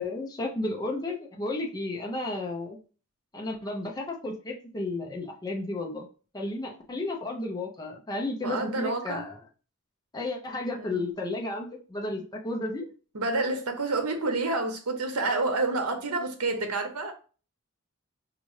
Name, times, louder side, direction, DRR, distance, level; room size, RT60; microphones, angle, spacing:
voice 1, 0.0-2.8 3.3-6.1 6.3-9.4 10.1-12.9, left 2 dB, 15° left, 0.6 m, -33 dB
voice 2, 8.4-9.3 10.8-11.0 13.1-17.1, right 3 dB, 80° right, 0.8 m, -29 dB
5.2 x 2.5 x 3.1 m
head